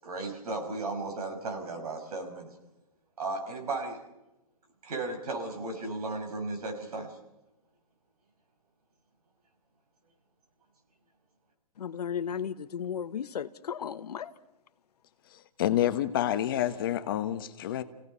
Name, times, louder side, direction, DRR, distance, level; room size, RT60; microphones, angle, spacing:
voice 1, 0.0-2.5 3.2-4.0 4.8-7.1, right 3 dB, 70° right, 6.0 m, -35 dB
voice 2, 11.8-14.3, left 8 dB, 80° left, 1.2 m, -35 dB
voice 3, 15.6-17.8, left 12 dB, 35° left, 1.0 m, -28 dB
28.5 x 17.0 x 5.6 m
hypercardioid pair, 170°, 20 cm